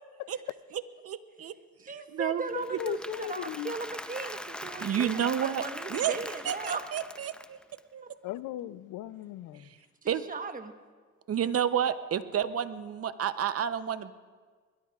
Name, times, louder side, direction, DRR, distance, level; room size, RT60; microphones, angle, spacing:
voice 1, 0.7-1.5 1.9-2.4 4.8-5.6 5.9-6.2 6.4-7.6 7.9-8.0 10.1-10.2 11.3-14.1, right 9 dB, 50° right, 12 dB, 0.8 m, -30 dB
voice 2, 1.8-6.9 8.0-8.1 10.0-10.7, right 4 dB, 25° right, 7 dB, 1.2 m, -38 dB
voice 3, 2.5-3.7 8.2-9.7, left 15 dB, 90° left, 17 dB, 0.5 m, -37 dB
Applause / Crowd, 2.5-7.8, left 1 dB, 5° left, 0.6 m, -42 dB
21.5 x 21.5 x 2.4 m, 1.5 s
cardioid pair, 90°, 30 cm